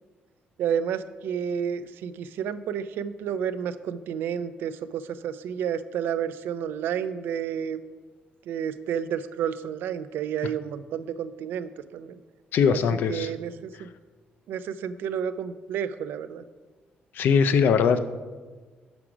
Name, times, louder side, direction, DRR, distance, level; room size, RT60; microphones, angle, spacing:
voice 1, 0.6-7.8 8.5-12.2 12.7-12.8 13.1-13.9 14.5-16.4, right 8 dB, 80° right, 13 dB, 0.3 m, -31 dB
voice 2, 12.5-13.3 17.1-18.0, left 6 dB, 65° left, 10 dB, 0.4 m, -21 dB
6.0 x 4.9 x 6.0 m, 1.4 s
cardioid pair, 150°, 4 cm